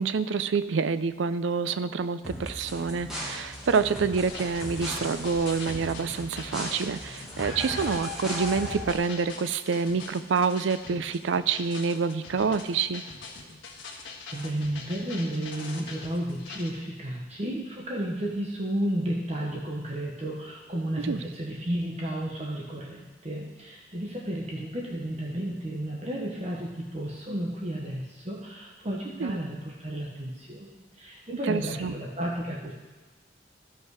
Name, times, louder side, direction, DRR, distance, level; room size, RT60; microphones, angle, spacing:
voice 1, 0.0-13.0 21.0-21.2 29.2-29.3 31.5-31.9, right 5 dB, 85° right, 13 dB, 0.4 m, -27 dB
sound 1, 2.2-9.0, left 1 dB, 5° right, 2.1 m, -37 dB
sound 2, 4.1-16.7, left 4 dB, 80° left, 1.6 m, -44 dB
voice 2, 14.3-32.7, right 1 dB, 35° right, -3 dB, 1.1 m, -32 dB
14.5 x 5.5 x 4.8 m, 1.3 s
head